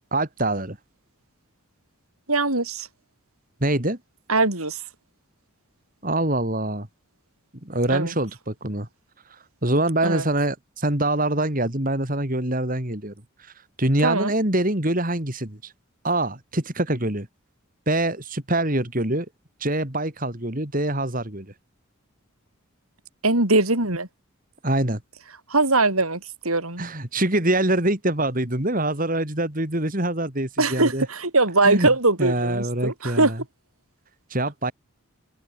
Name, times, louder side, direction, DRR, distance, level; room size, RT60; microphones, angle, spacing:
voice 1, 0.1-0.8 3.6-4.0 6.0-6.9 7.6-8.9 9.3-13.1 13.4-15.7 16.0-17.3 17.9-19.3 19.6-21.5 24.6-25.0 26.8-31.1 31.6-31.9 32.2-33.4 34.3-34.7, right 1 dB, 40° right, 3.5 m, -24 dB
voice 2, 2.3-2.9 4.3-4.8 7.9-8.1 10.0-10.2 14.0-14.3 23.2-24.1 25.5-26.8 30.6-33.3, right 2 dB, 80° right, 6.2 m, -21 dB
open air
head